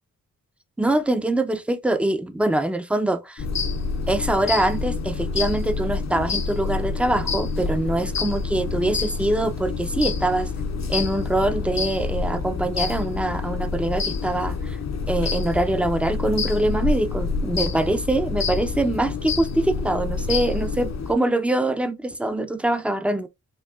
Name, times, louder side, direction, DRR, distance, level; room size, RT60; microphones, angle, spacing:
voice 1, 0.8-3.4 4.1-10.5 10.9-14.8 15.1-23.3, right 1 dB, 5° right, 0.5 m, -24 dB
sound 1, 3.4-21.1, left 4 dB, 50° left, 0.6 m, -27 dB
5.3 x 2.3 x 2.3 m
cardioid pair, 45°, 36 cm